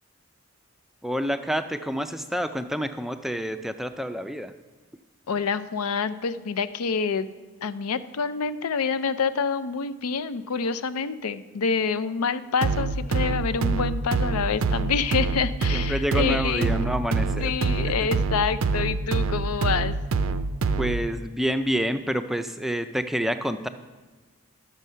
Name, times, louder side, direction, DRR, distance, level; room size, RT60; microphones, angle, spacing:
voice 1, 1.0-4.5 15.7-17.5 17.9-18.1 20.8-23.7, equal, ahead, 9 dB, 0.3 m, -28 dB
voice 2, 5.3-7.3 7.6-16.8 17.4-20.0, left 5 dB, 90° left, 13 dB, 0.5 m, -27 dB
sound 1, 12.6-21.1, right 4 dB, 70° right, 0.5 m, -26 dB
12.0 x 7.2 x 5.6 m, 1.3 s
head